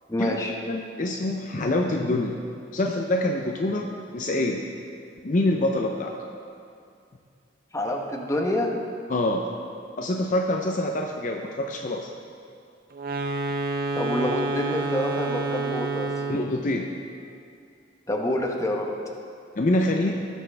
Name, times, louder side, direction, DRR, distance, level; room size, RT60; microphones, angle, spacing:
voice 1, 0.1-0.5 7.7-8.7 13.9-16.1 18.1-18.9, left 1 dB, 15° left, 1 dB, 0.9 m, -27 dB
voice 2, 0.7-2.4 2.7-4.6 5.2-6.2 9.1-9.5 10.0-12.1 16.3-16.9 19.6-20.2, left 1 dB, 45° left, 2 dB, 0.5 m, -25 dB
sound 1, 12.9-16.6, right 3 dB, 55° right, 0.7 m, -28 dB
18.0 x 6.2 x 3.4 m, 2.4 s
head